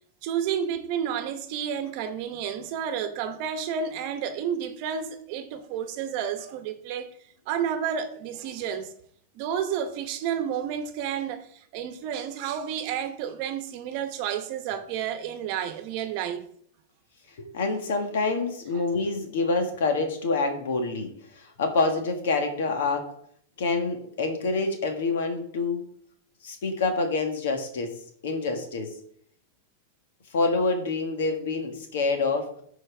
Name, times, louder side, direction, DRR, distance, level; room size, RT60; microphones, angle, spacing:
voice 1, 0.2-7.1 7.5-8.9 9.3-16.4, right 8 dB, 50° right, 0.9 m, -31 dB
voice 2, 17.4-23.1 23.6-25.8 26.4-27.9 28.2-28.9 30.3-32.5, left 3 dB, 80° left, 1.6 m, -27 dB
13.5 x 4.6 x 3.4 m
supercardioid pair, 140°, 0 cm